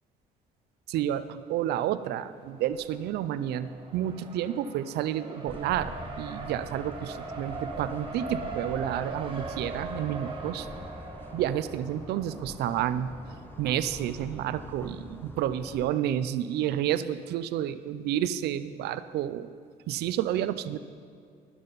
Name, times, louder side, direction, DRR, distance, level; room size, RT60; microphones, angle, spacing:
voice 1, 0.9-10.7 11.3-13.1 13.6-19.5 19.9-20.8, right 11 dB, 75° right, 13 dB, 0.5 m, -30 dB
Race car auto racing, 2.2-14.9, right 3 dB, 30° right, 1.3 m, -42 dB
sound 1, 5.5-15.8, left 1 dB, 10° left, 0.8 m, -44 dB
12.0 x 11.0 x 4.1 m, 2.2 s
cardioid pair, 110°, 17 cm